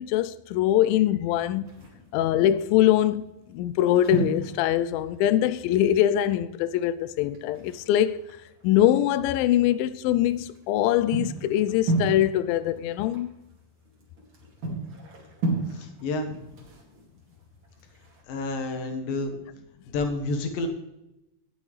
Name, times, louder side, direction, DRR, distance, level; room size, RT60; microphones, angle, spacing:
voice 1, 0.0-1.7 2.1-8.2 8.6-13.4, left 12 dB, 85° left, 2.1 m, -23 dB
sound 1, 1.6-2.2 2.9-3.1 3.4-6.1 6.4-6.5 6.8-6.9 7.3-9.4 9.9-18.2, right 2 dB, 35° right, 2.6 m, -34 dB
voice 2, 15.7-16.4 18.3-19.3 19.9-20.7, left 2 dB, 65° left, 3.0 m, -29 dB
18.0 x 7.8 x 3.2 m
omnidirectional pair, 4.7 m